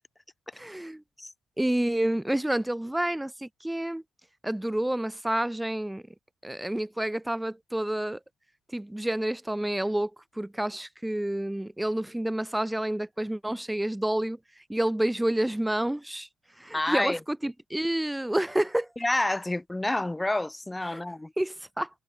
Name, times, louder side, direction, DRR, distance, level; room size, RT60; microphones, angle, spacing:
voice 1, 0.5-1.0 1.6-4.0 4.4-6.0 6.4-8.2 8.7-10.1 10.4-14.4 14.7-16.3 16.6-18.9 20.9-21.0 21.4-21.9, right 1 dB, 5° right, 1.3 m, -29 dB
voice 2, 16.7-17.2 19.0-21.3, left 1 dB, 10° left, 2.0 m, -28 dB
cardioid pair, 90°, 0 cm